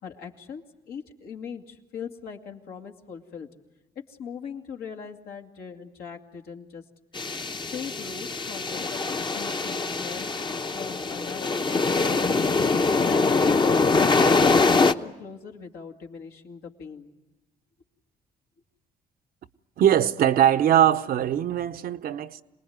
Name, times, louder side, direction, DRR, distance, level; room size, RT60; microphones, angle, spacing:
voice 1, 0.0-3.5 4.0-6.9 7.7-10.3 10.7-12.5 13.0-17.1, left 6 dB, 75° left, 2.3 m, -40 dB
sound 1, 7.1-14.9, left 3 dB, 30° left, 0.9 m, -23 dB
voice 2, 19.8-22.4, right 10 dB, 70° right, 0.9 m, -21 dB
27.0 x 20.0 x 9.4 m
supercardioid pair, 75°, 16 cm